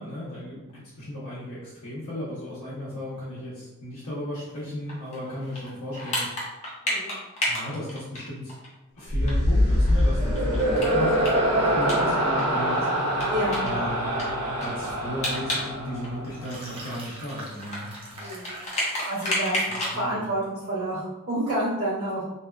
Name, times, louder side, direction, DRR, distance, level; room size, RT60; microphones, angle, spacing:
voice 1, 0.0-6.3 7.4-8.5 8.9-12.9 13.6-14.2 14.6-18.4 19.7-20.2, left 1 dB, 80° left, -10 dB, 0.7 m, -35 dB
sound 1, 4.9-8.7 9.0-9.1 9.3-9.4 9.7-12.4 12.7-12.8 13.2-15.7 16.0-20.0, left 1 dB, 30° left, 0.7 m, -31 dB
sound 2, 9.1-16.5, equal, 85° right, 0.5 m, -24 dB
voice 2, 13.3-13.6 18.1-18.5 19.1-22.2, right 1 dB, 65° right, -13 dB, 1.1 m, -29 dB
sound 3, 16.2-19.5, right 1 dB, 25° right, 0.5 m, -42 dB
2.6 x 2.1 x 2.3 m, 1.0 s
head